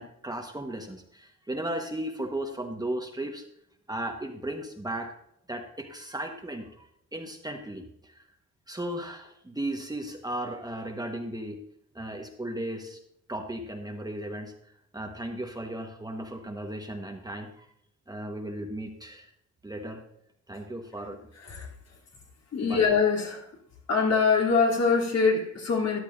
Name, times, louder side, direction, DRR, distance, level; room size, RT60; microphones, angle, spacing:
voice 1, 0.0-3.4 3.9-5.1 5.5-8.2 8.7-11.6 11.9-13.0 13.3-14.5 14.9-17.7 18.1-19.3 19.6-20.0 20.5-21.2 22.6-22.9, right 1 dB, 15° right, 1.2 m, -36 dB
voice 2, 21.4-21.7 22.5-23.5 23.9-26.0, left 5 dB, 55° left, 3.0 m, -24 dB
13.5 x 10.5 x 2.6 m
cardioid pair, 90°, 30 cm